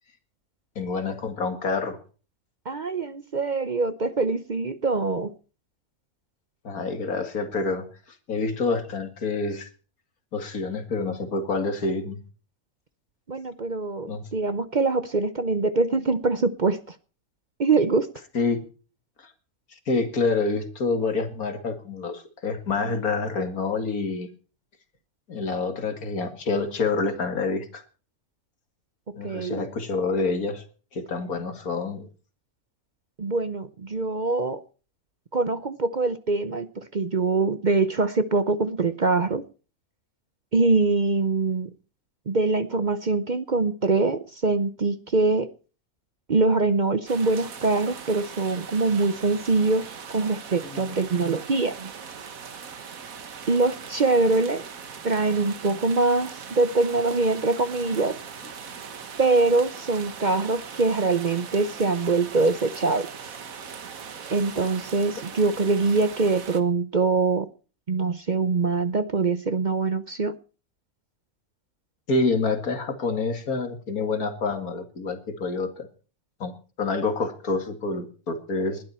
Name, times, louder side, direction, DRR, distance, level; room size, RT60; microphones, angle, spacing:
voice 1, 0.8-2.0 6.6-7.9 8.3-9.7 10.3-12.2 14.1-14.2 18.3-18.6 19.9-24.3 25.3-27.8 29.2-30.6 30.9-32.1 50.6-51.0 72.1-75.9 76.4-76.5 76.8-78.9, left 3 dB, 90° left, 8 dB, 2.6 m, -27 dB
voice 2, 2.7-5.3 13.3-16.9 17.6-18.1 29.2-29.6 33.2-34.6 35.3-39.4 40.5-41.7 42.3-45.5 46.3-51.9 53.5-54.6 55.0-58.2 59.2-63.1 64.3-67.5 67.9-70.3, right 3 dB, 40° right, 13 dB, 0.7 m, -23 dB
sound 1, 47.1-66.6, right 6 dB, 70° right, 1.8 m, -40 dB
20.5 x 11.5 x 4.4 m, 0.38 s
omnidirectional pair, 1.5 m